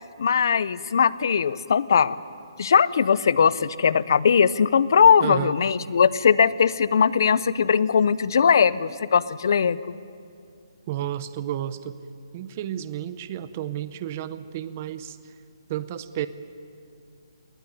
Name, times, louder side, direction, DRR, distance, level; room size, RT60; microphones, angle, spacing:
voice 1, 0.2-2.2 2.6-9.8, left 6 dB, 50° left, 19 dB, 0.6 m, -20 dB
voice 2, 5.2-5.5 10.9-12.0 12.3-15.3 15.7-16.3, right 12 dB, 25° right, 14 dB, 0.6 m, -32 dB
19.5 x 19.0 x 9.4 m, 2.4 s
hypercardioid pair, 175°, 3 cm